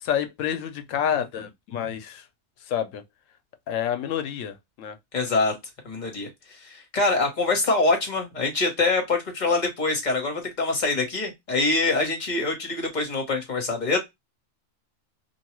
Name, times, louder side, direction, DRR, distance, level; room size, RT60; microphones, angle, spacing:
voice 1, 0.0-2.2 2.7-3.0 3.7-4.9, left 9 dB, 75° left, 1.0 m, -28 dB
voice 2, 5.1-5.5 5.8-14.0, left 3 dB, 35° left, 1.1 m, -24 dB
2.8 x 2.3 x 2.9 m
omnidirectional pair, 1.3 m